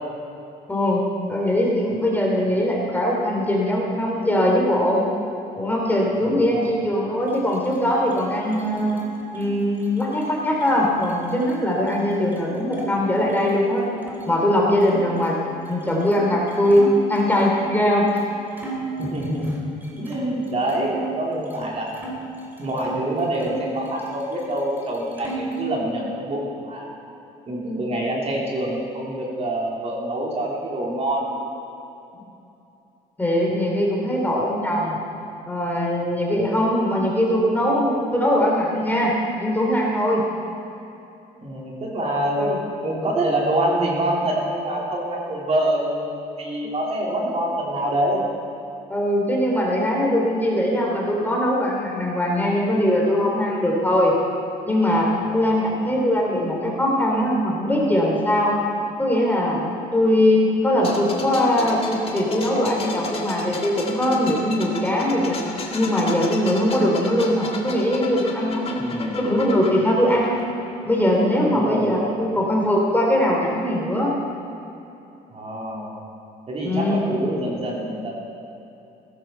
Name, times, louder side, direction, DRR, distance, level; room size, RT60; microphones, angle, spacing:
voice 1, 0.7-1.0 1.3-5.0 5.6-9.0 9.3-13.8 14.3-15.4 15.7-18.0 33.2-35.0 35.5-39.1 39.4-40.2 42.4-42.6 46.6-46.7 48.9-54.2 54.7-58.5 59.0-65.4 65.7-68.8 69.2-70.4 70.8-74.1 76.6-77.1, left 1 dB, 10° left, -2 dB, 3.0 m, -21 dB
voice 2, 6.2-6.7 19.0-19.6 19.9-21.9 22.6-26.9 27.5-31.4 32.1-32.2 41.4-42.5 42.8-48.2 55.2-55.7 68.7-69.2 69.8-70.0 71.5-72.3 75.3-75.9 76.5-78.1, right 1 dB, 40° right, -3 dB, 3.3 m, -26 dB
sound 1, 7.2-12.9 13.2-14.2 14.8-17.7 18.2-18.3 18.6-21.0 21.4-23.0 23.4-24.5 24.8-25.7, right 2 dB, 10° right, 2.8 m, -37 dB
sound 2, 60.8-71.5 71.7-71.9, left 3 dB, 35° left, 1.8 m, -34 dB
16.0 x 13.0 x 4.5 m, 2.8 s
cardioid pair, 110°, 17 cm